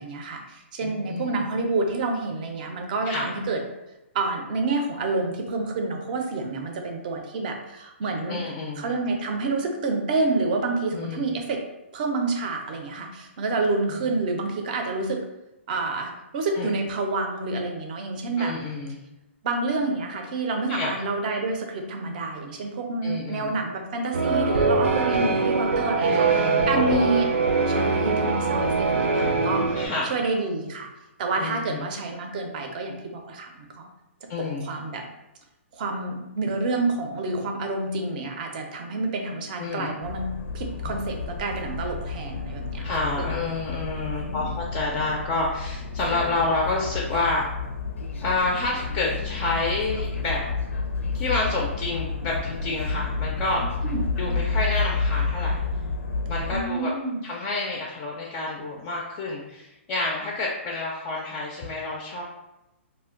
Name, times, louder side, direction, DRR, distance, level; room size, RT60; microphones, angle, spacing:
voice 1, 0.0-3.6 4.1-8.4 8.8-11.6 11.9-15.2 15.7-18.5 19.4-27.3 27.7-29.7 30.1-30.9 31.2-33.9 34.6-35.0 35.7-42.8 43.2-43.3 44.2-44.6 53.8-54.0 56.5-57.2, right 3 dB, 40° right, 3 dB, 0.5 m, -28 dB
voice 2, 0.8-1.5 3.0-3.3 8.3-8.9 10.9-11.2 13.9-14.0 16.6-16.7 18.4-19.0 20.7-21.0 23.0-23.5 26.1-27.1 29.7-30.2 31.4-31.9 34.3-34.7 39.6-39.9 40.8-40.9 42.8-47.5 48.2-50.4 51.1-53.7 54.2-55.6 56.3-56.9 57.2-62.2, left 2 dB, 25° left, -2 dB, 0.3 m, -29 dB
sound 1, 24.1-29.9, right 4 dB, 90° right, 0.6 m, -22 dB
sound 2, 40.0-56.6, left 4 dB, 90° left, 0.5 m, -30 dB
2.5 x 2.1 x 3.7 m, 0.94 s
hypercardioid pair, 155°, 7 cm